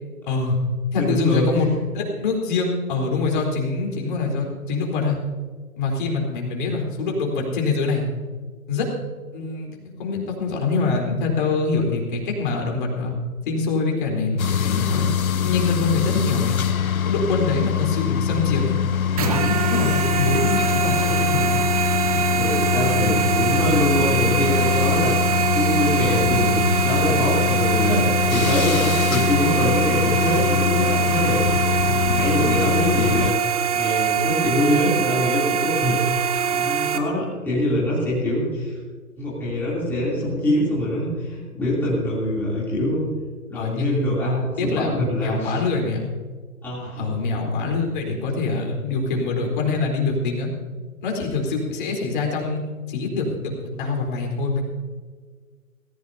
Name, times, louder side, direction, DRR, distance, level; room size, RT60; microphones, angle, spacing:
voice 1, 0.3-0.6 0.9-1.7 1.9-5.2 5.8-8.1 8.7-8.9 9.3-13.1 13.5-15.1 15.4-16.6 17.0-18.8 19.2-21.5 43.5-44.2 44.6-46.1 47.0-50.5 51.0-52.6 52.9-53.4 53.8-54.6, left 4 dB, 35° left, 0 dB, 4.0 m, -24 dB
voice 2, 1.0-1.5 22.3-25.1 25.5-36.0 36.5-38.8 39.2-43.1 43.5-45.5 46.6-47.1, left 1 dB, 5° left, -9 dB, 3.1 m, -24 dB
sound 1, 14.4-33.3, left 8 dB, 70° left, 0.7 m, -23 dB
sound 2, 19.2-37.0, right 7 dB, 25° right, 0.8 m, -24 dB
19.5 x 17.0 x 2.8 m, 1.5 s
figure-of-eight pair, 140°, 44 cm